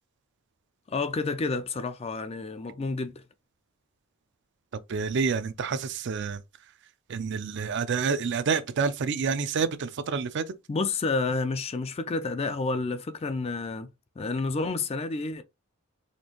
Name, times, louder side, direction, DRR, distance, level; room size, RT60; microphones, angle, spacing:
voice 1, 0.9-3.2 10.7-13.9 14.2-15.4, left 3 dB, 25° left, 0.4 m, -30 dB
voice 2, 4.9-6.4 7.1-10.5, right 5 dB, 50° right, 0.4 m, -28 dB
4.3 x 2.7 x 2.9 m
head